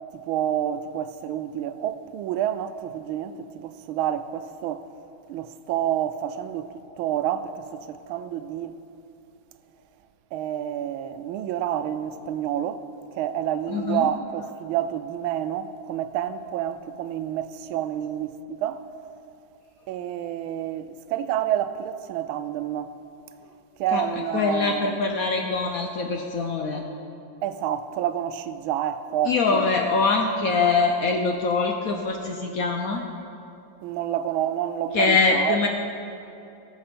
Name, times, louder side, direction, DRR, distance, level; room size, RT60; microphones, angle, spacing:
voice 1, 0.1-4.9 5.3-8.8 10.3-12.8 13.1-18.8 19.9-22.9 23.8-25.0 27.4-29.7 33.8-35.7, right 10 dB, 90° right, 1.4 m, -29 dB
voice 2, 13.7-14.1 23.9-24.0 24.3-26.8 29.3-33.0 34.9-35.7, left 4 dB, 65° left, 0.9 m, -23 dB
17.5 x 7.3 x 4.3 m
omnidirectional pair, 2.2 m